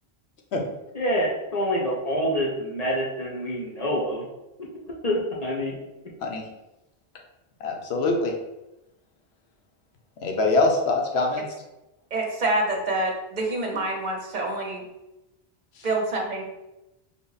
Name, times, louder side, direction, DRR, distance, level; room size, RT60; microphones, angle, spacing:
voice 1, 0.9-4.3 4.6-4.7 5.0-5.8, equal, 45° left, -3 dB, 0.7 m, -26 dB
voice 2, 7.6-8.3 10.2-11.4, left 3 dB, 80° left, 2 dB, 0.9 m, -23 dB
voice 3, 12.1-14.8 15.8-16.4, right 2 dB, 50° right, 0 dB, 0.7 m, -26 dB
3.4 x 2.1 x 3.9 m, 0.96 s
omnidirectional pair, 1.1 m